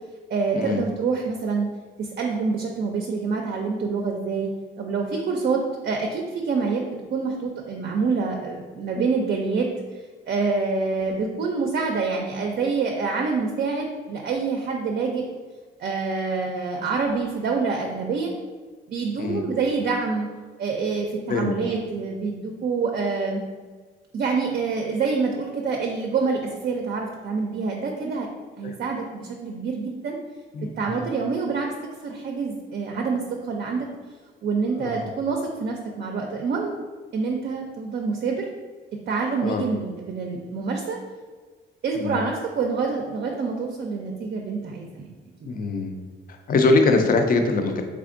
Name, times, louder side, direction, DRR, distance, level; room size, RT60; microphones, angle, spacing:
voice 1, 0.3-1.7 2.0-4.5 4.8-6.8 7.1-9.7 10.3-15.2 15.8-18.3 18.9-20.3 20.6-23.4 24.1-28.3 28.6-30.2 30.8-31.7 32.0-33.9 34.4-36.7 37.1-38.5 39.1-41.0 41.8-45.1, right 4 dB, 50° right, 1 dB, 0.5 m, -26 dB
voice 2, 30.5-31.0 34.7-35.1 39.4-39.6 41.9-42.2 45.4-45.9 46.5-47.8, left 3 dB, 45° left, 5 dB, 0.5 m, -22 dB
3.5 x 3.3 x 2.5 m, 1.4 s
cardioid pair, 90°, 20 cm